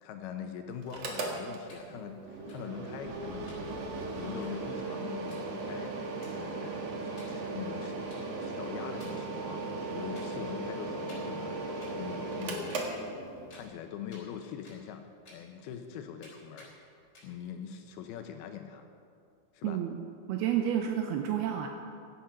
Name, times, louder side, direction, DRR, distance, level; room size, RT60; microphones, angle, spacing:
voice 1, 0.0-6.9 7.2-8.1 8.4-9.7 9.9-12.9 13.5-15.0 15.3-16.7 17.2-18.9 19.5-19.8, left 8 dB, 80° left, 6 dB, 2.5 m, -43 dB
Mechanical fan, 0.8-13.7, right 2 dB, 55° right, 1.9 m, -37 dB
sound 1, 1.7-1.8 2.0-2.1 2.3-2.5 2.9-3.1 3.5-3.6 3.9-4.0 4.3-5.0 5.3-5.4 5.8-5.9 6.2-6.8 7.2-7.3 7.6-8.7 9.0-9.9 10.1-10.5 10.7-12.4 12.7-13.2 13.5-15.0 15.2-15.9 16.2-16.3 16.6-16.7 17.0-17.5, left 1 dB, 30° left, 4.2 m, -57 dB
voice 2, 19.6-20.0 20.3-21.7, right 9 dB, 80° right, 4 dB, 2.5 m, -30 dB
16.0 x 10.0 x 5.6 m, 2.4 s
omnidirectional pair, 4.9 m